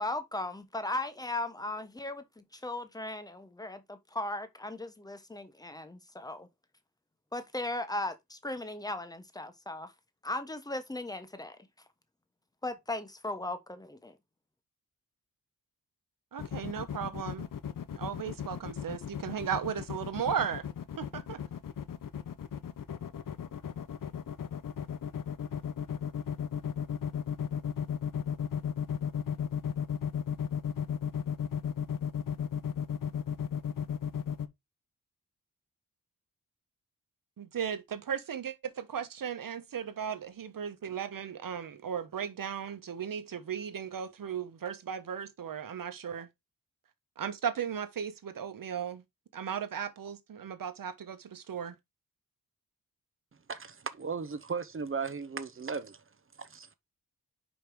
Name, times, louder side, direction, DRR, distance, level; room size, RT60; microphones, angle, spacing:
voice 1, 0.0-6.5 7.3-9.9 10.2-11.6 12.6-14.1, left 2 dB, 10° left, 1.0 m, -37 dB
voice 2, 16.3-17.5 17.9-20.6 21.0-21.4 37.4-46.3 47.2-49.0 49.3-51.7, right 8 dB, 70° right, 1.2 m, -36 dB
sound 1, 16.4-34.5, left 8 dB, 65° left, 0.8 m, -34 dB
voice 3, 53.5-56.0 56.4-56.7, right 5 dB, 35° right, 0.8 m, -36 dB
5.2 x 5.1 x 4.6 m
wide cardioid pair, 125°, 35 cm